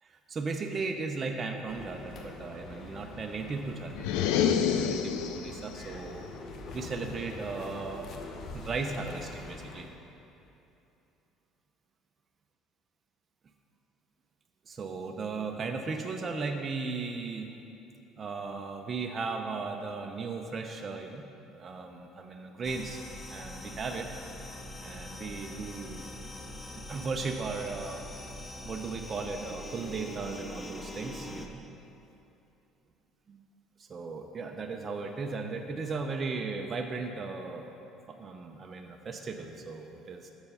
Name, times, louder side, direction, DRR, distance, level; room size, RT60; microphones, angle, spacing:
voice 1, 0.0-6.3 6.7-8.1 8.5-9.9 14.7-17.5 18.2-23.0 23.3-24.1 24.8-26.1 26.8-28.0 28.6-31.7 33.3-33.4 33.8-37.7 38.1-40.3, right 4 dB, 30° right, 4 dB, 0.5 m, -36 dB
sound 1, 1.7-9.9, left 3 dB, 50° left, 0.8 m, -44 dB
sound 2, 4.0-5.6, left 8 dB, 90° left, 0.4 m, -27 dB
sound 3, 22.6-31.5, left 1 dB, 15° left, 0.6 m, -43 dB
7.0 x 6.7 x 5.5 m, 2.8 s
cardioid pair, 130°, 0 cm